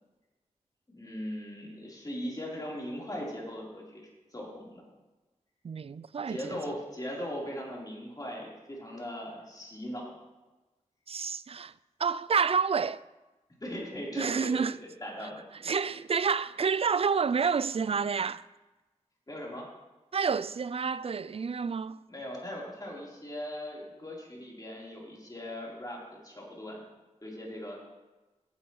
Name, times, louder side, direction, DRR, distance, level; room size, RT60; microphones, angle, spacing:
voice 1, 0.9-4.8 6.3-10.2 13.6-15.5 19.3-19.6 22.1-26.8 27.2-27.8, equal, 30° left, 4.1 m, -39 dB
voice 2, 5.6-6.6 11.1-11.7 12.0-13.0 14.2-14.8 15.6-18.4 20.1-22.0, right 6 dB, 50° right, 0.4 m, -29 dB
15.5 x 8.6 x 3.2 m
cardioid pair, 45°, 13 cm